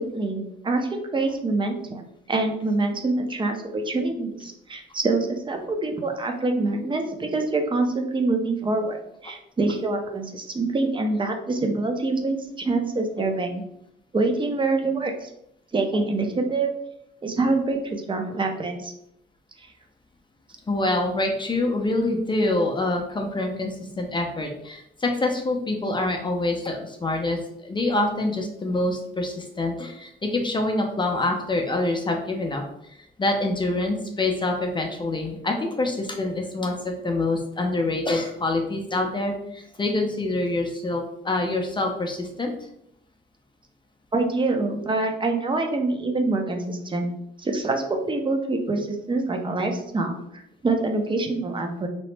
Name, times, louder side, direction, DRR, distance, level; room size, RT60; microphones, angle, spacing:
voice 1, 0.0-2.0 2.3-9.0 9.2-13.6 14.1-15.3 15.7-16.7 17.2-18.9 44.1-47.1 47.4-50.2 50.6-51.9, right 3 dB, 25° right, 4 dB, 0.5 m, -25 dB
voice 2, 20.7-32.6 33.2-42.5, left 2 dB, 25° left, 2 dB, 0.5 m, -26 dB
2.9 x 2.0 x 3.2 m, 0.77 s
cardioid pair, 90°, 20 cm